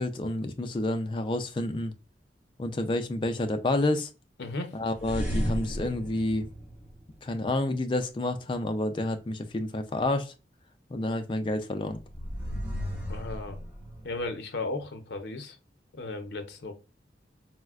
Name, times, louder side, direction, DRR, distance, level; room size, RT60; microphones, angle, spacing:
voice 1, 0.0-1.9 2.6-4.1 4.7-6.5 7.2-10.3 10.9-12.0, left 2 dB, 30° left, 0.3 m, -29 dB
voice 2, 4.4-4.8 13.1-13.6 14.0-15.6 15.9-16.7, left 2 dB, 75° left, 0.6 m, -35 dB
sound 1, 5.0-7.4 11.9-14.3, equal, 10° right, 0.7 m, -34 dB
4.0 x 2.1 x 2.3 m
head